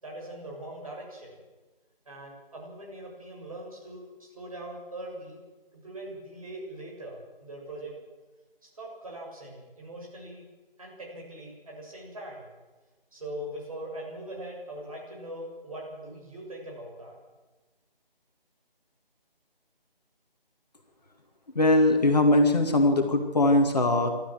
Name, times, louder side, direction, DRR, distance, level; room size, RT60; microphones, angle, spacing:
voice 1, 0.0-1.3 2.0-5.4 5.8-7.9 8.6-10.4 10.8-12.5 13.1-17.1, right 1 dB, 35° right, -1 dB, 6.8 m, -41 dB
voice 2, 21.6-24.1, left 1 dB, 45° left, 4 dB, 2.2 m, -21 dB
26.5 x 13.0 x 7.6 m, 1.2 s
figure-of-eight pair, 160°, 29 cm